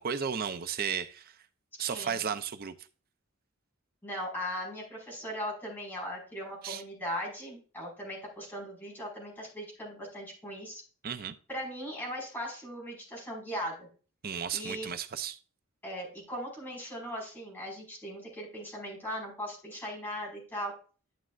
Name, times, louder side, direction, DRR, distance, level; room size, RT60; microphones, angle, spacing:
voice 1, 0.0-1.4 1.8-2.7 6.6-6.8 11.0-11.4 14.2-15.4, right 7 dB, 45° right, 0.5 m, -34 dB
voice 2, 4.0-10.8 11.5-13.9 14.5-14.9 15.8-20.7, equal, 10° left, 5.0 m, -39 dB
11.5 x 7.5 x 2.4 m
head